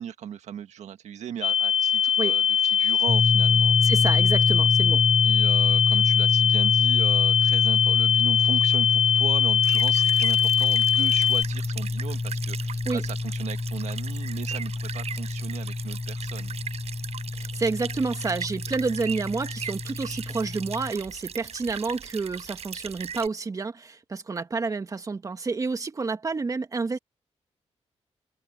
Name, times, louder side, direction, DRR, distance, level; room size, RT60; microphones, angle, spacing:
voice 1, 0.0-4.0 5.2-16.6, right 9 dB, 90° right, 1.6 m, -37 dB
sound 1, 1.4-11.4, left 8 dB, 70° left, 0.6 m, -21 dB
sound 2, 3.1-20.9, left 3 dB, 15° left, 0.7 m, -27 dB
voice 2, 3.8-5.0 12.9-13.0 17.3-27.0, right 4 dB, 30° right, 1.8 m, -29 dB
sound 3, 9.6-23.3, right 8 dB, 65° right, 6.6 m, -39 dB
wide cardioid pair, 135°, 11 cm